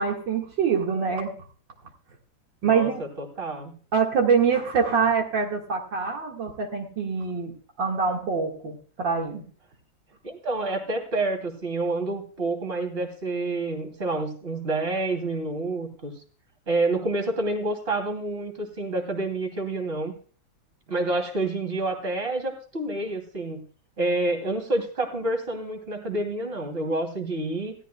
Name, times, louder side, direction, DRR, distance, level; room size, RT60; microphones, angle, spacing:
voice 1, 0.0-1.4 2.6-3.0 3.9-7.5 7.8-9.5, right 6 dB, 70° right, 2.5 m, -24 dB
voice 2, 2.6-3.7 10.2-16.1 16.7-20.1 20.9-23.6 24.0-27.7, right 2 dB, 30° right, 3.0 m, -28 dB
16.5 x 13.5 x 2.2 m
omnidirectional pair, 2.1 m